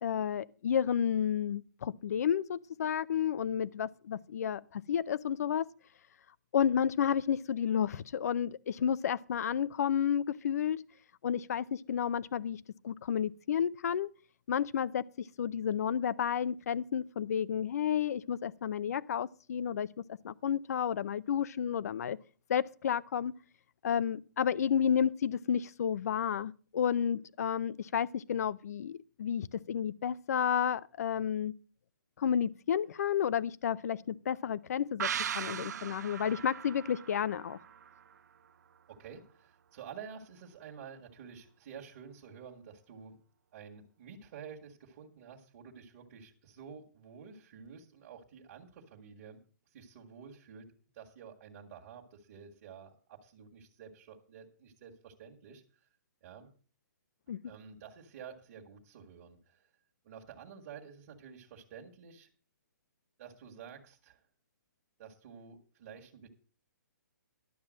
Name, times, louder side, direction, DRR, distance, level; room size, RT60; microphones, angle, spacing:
voice 1, 0.0-5.7 6.5-10.8 11.2-14.1 14.5-19.9 20.2-22.2 22.5-23.3 23.8-31.5 32.2-37.6 57.3-57.4, left 8 dB, 55° left, 0.6 m, -31 dB
sound 1, 35.0-38.5 38.8-38.9, right 8 dB, 60° right, 0.5 m, -39 dB
voice 2, 38.9-43.2 43.5-49.4 49.7-50.7 50.9-55.6 56.2-56.5 57.4-59.7 60.0-62.3 63.2-64.2 65.0-66.3, right 7 dB, 35° right, 1.7 m, -50 dB
12.0 x 7.2 x 6.2 m
hypercardioid pair, 165°, 10 cm